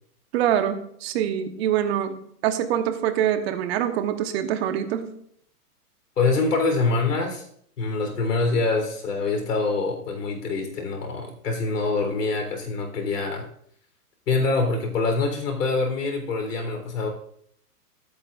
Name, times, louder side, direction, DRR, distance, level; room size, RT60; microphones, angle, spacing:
voice 1, 0.3-2.2 2.4-5.1, right 10 dB, 40° right, 8 dB, 1.2 m, -24 dB
voice 2, 6.2-7.5 7.8-13.5 14.3-17.1, left 3 dB, 75° left, 3 dB, 4.0 m, -25 dB
20.0 x 8.8 x 2.6 m, 0.66 s
hypercardioid pair, 135°, 47 cm